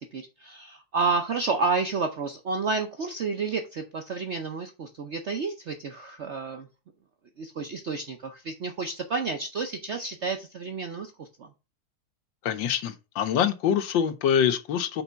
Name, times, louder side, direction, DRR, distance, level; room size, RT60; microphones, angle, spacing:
voice 1, 0.0-6.7 7.4-11.5, right 4 dB, 65° right, 0.7 m, -30 dB
voice 2, 12.4-15.0, left 8 dB, 80° left, 1.5 m, -25 dB
5.9 x 4.0 x 5.6 m
omnidirectional pair, 2.1 m